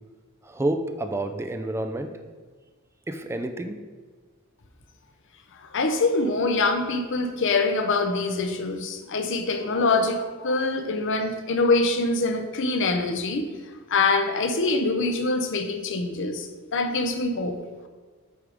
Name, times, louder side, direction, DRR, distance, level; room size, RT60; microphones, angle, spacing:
voice 1, 0.4-2.1 3.1-3.8, right 1 dB, 10° right, 6 dB, 0.4 m, -29 dB
voice 2, 5.6-13.5 13.9-17.6, left 3 dB, 60° left, 7 dB, 0.7 m, -24 dB
8.0 x 3.5 x 5.0 m, 1.4 s
head